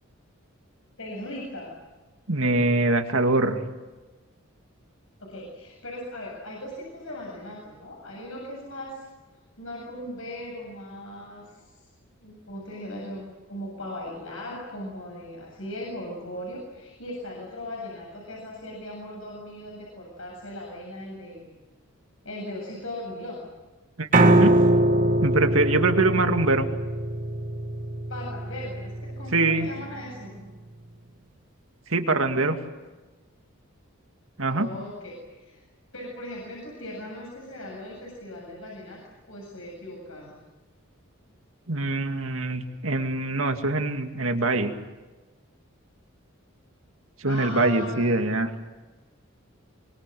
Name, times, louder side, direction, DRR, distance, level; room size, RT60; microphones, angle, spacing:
voice 1, 1.0-1.7 5.2-9.0 9.6-11.7 12.2-21.5 22.2-23.4 28.1-30.5 34.5-35.6 35.9-39.0 39.3-40.3 47.2-48.1, left 1 dB, 70° left, -2 dB, 8.0 m, -38 dB
voice 2, 2.3-3.6 24.0-24.1 24.4-24.5 25.2-26.7 29.3-29.7 31.9-32.6 34.4-34.7 41.7-44.7 47.2-48.5, right 2 dB, 70° right, 5 dB, 2.5 m, -23 dB
Piano, 24.1-30.3, right 1 dB, 40° right, 1.7 m, -23 dB
24.5 x 24.5 x 7.8 m, 1.2 s
head